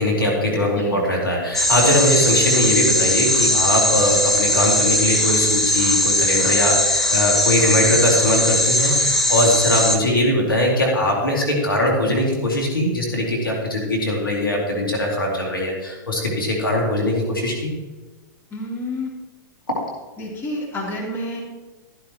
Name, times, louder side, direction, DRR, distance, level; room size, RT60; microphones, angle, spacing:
voice 1, 0.0-17.7, left 1 dB, 85° left, -1 dB, 2.7 m, -21 dB
voice 2, 0.7-1.1 18.5-19.1 20.2-21.4, left 1 dB, 20° left, -4 dB, 3.4 m, -29 dB
sound 1, 1.5-10.0, left 1 dB, 5° left, 1.1 m, -19 dB
13.5 x 12.0 x 3.1 m, 1.2 s
figure-of-eight pair, 105°, 11 cm